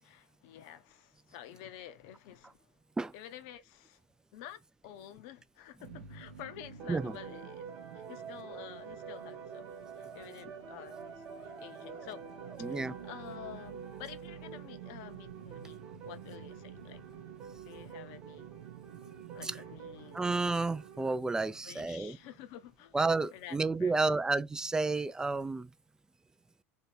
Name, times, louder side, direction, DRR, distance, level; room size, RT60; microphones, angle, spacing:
voice 1, 0.0-2.7 3.1-4.0 4.3-7.6 7.9-12.2 12.6-17.0 17.6-18.5 19.3-20.2 21.5-23.0 23.3-24.2, left 11 dB, 60° left, 0.6 m, -50 dB
sound 1, 5.8-23.0, right 9 dB, 75° right, 0.7 m, -51 dB
sound 2, 6.8-21.2, right 6 dB, 40° right, 1.0 m, -48 dB
voice 2, 12.6-12.9 19.4-19.6 20.1-22.2 22.9-25.7, right 3 dB, 10° right, 0.3 m, -31 dB
3.1 x 2.8 x 4.1 m
hypercardioid pair, 80°, 7 cm